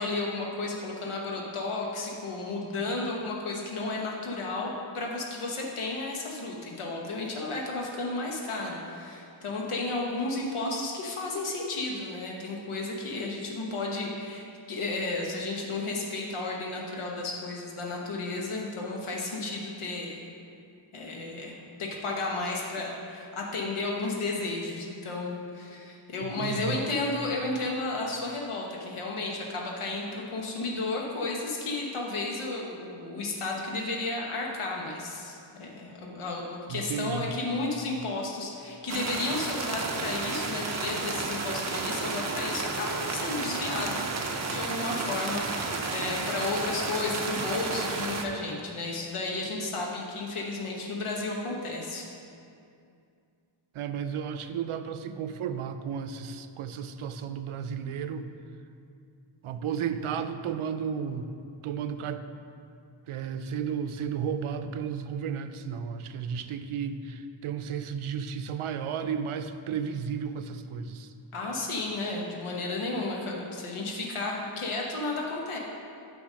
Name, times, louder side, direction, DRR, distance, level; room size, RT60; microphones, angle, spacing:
voice 1, 0.0-20.2 20.9-21.5 21.8-52.0 71.3-75.6, left 2 dB, 85° left, -1 dB, 1.1 m, -33 dB
voice 2, 26.2-26.8 36.7-37.3 53.7-58.3 59.4-61.3 61.6-62.2 63.1-71.1, right 7 dB, 85° right, 9 dB, 0.6 m, -33 dB
sound 1, 38.9-48.2, right 3 dB, 35° right, 0.6 m, -32 dB
9.6 x 3.5 x 6.4 m, 2.4 s
wide cardioid pair, 155°, 49 cm